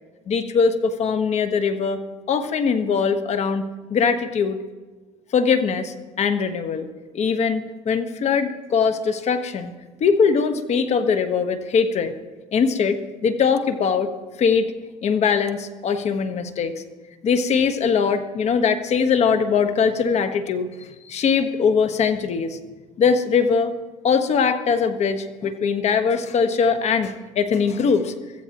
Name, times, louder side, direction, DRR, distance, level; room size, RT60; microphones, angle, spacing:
voice 1, 0.3-2.0 2.3-4.6 5.3-6.9 7.1-9.7 10.0-12.1 12.5-13.0 13.2-14.1 14.4-14.7 15.0-16.7 17.2-22.6 23.0-23.7 24.0-28.1, left 6 dB, 45° left, 9 dB, 1.4 m, -21 dB
24.0 x 14.5 x 3.0 m, 1.4 s
supercardioid pair, 95°, 15 cm